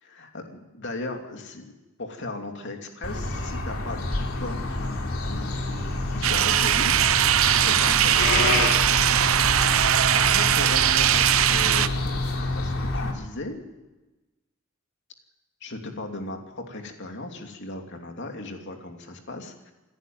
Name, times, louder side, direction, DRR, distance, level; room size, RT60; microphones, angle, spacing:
voice 1, 0.0-5.0 5.3-6.9 7.5-9.1 10.1-12.3 12.5-13.6 15.6-19.7, left 2 dB, 55° left, 3 dB, 2.9 m, -37 dB
sound 1, 3.0-13.1, left 2 dB, 85° left, 3.1 m, -28 dB
sound 2, 6.2-11.9, right 11 dB, 70° right, 0.7 m, -20 dB
27.5 x 10.5 x 9.5 m, 1.1 s
head